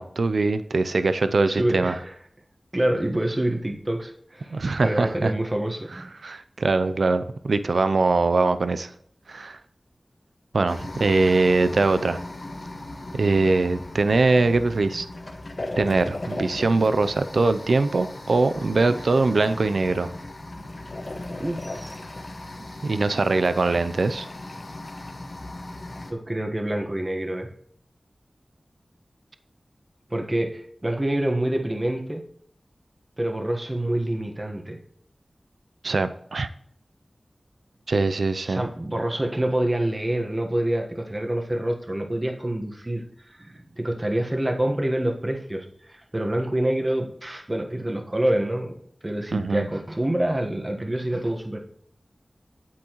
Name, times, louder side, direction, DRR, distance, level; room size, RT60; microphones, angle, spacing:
voice 1, 0.0-2.0 4.5-5.3 6.2-8.9 9.3-9.6 10.5-12.2 13.1-15.1 15.8-20.1 22.8-24.3 35.8-36.5 37.9-38.6 49.3-49.7, right 3 dB, 85° right, 11 dB, 0.5 m, -22 dB
voice 2, 1.5-2.1 2.7-6.1 18.9-19.0 21.4-22.1 23.7-23.8 26.1-27.5 30.1-32.2 33.2-34.8 38.4-48.7 49.0-51.6, right 1 dB, 30° right, 3 dB, 1.3 m, -27 dB
sound 1, 10.7-26.1, left 2 dB, 50° left, 1.4 m, -37 dB
8.6 x 8.5 x 3.0 m, 0.66 s
wide cardioid pair, 65°, 0 cm